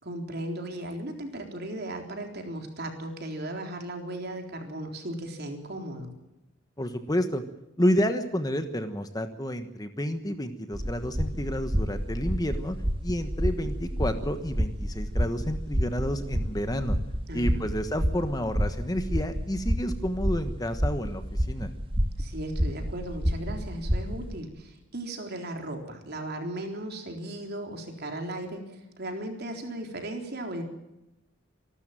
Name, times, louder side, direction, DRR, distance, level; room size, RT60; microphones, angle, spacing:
voice 1, 0.0-6.1 17.3-17.8 22.2-30.6, right 1 dB, 50° right, 3 dB, 3.8 m, -36 dB
voice 2, 6.8-7.4 7.8-12.8 13.0-17.0 17.3-21.2 21.5-21.7, equal, 20° left, 8 dB, 1.2 m, -30 dB
sound 1, 10.7-24.4, equal, 25° right, 1.6 m, -29 dB
26.0 x 12.5 x 9.0 m, 0.93 s
head